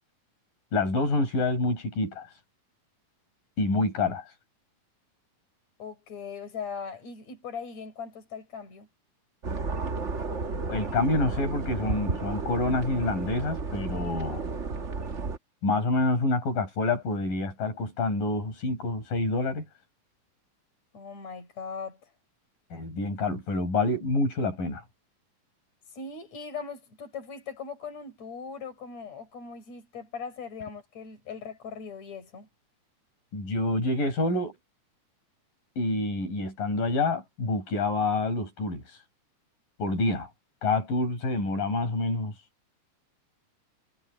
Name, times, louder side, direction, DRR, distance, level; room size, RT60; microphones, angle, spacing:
voice 1, 0.7-2.3 3.6-4.3 10.7-14.4 15.6-19.7 22.7-24.8 33.3-34.5 35.8-38.8 39.8-40.3 40.6-42.3, left 2 dB, 85° left, 9.1 m, -27 dB
voice 2, 5.8-8.9 20.9-22.0 25.9-32.5, left 5 dB, 55° left, 7.1 m, -39 dB
sound 1, 9.4-15.4, right 4 dB, 85° right, 0.6 m, -32 dB
omnidirectional pair, 3.8 m